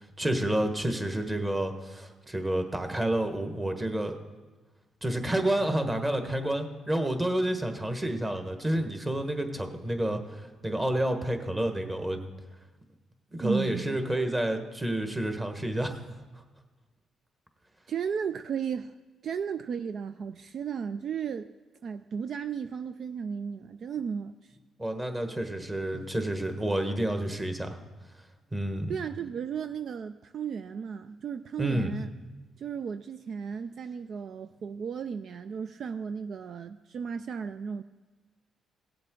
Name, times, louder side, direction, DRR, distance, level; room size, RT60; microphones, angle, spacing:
voice 1, 0.0-4.1 5.0-12.2 13.3-16.0 24.8-27.8 28.5-28.9 31.6-31.9, right 1 dB, 15° right, 5 dB, 1.3 m, -29 dB
voice 2, 13.4-14.0 17.9-18.9 19.2-21.5 21.8-24.6 28.9-32.1 32.6-37.8, right 7 dB, 60° right, 10 dB, 0.3 m, -34 dB
17.5 x 7.7 x 3.8 m, 1.3 s
cardioid pair, 90°, 0 cm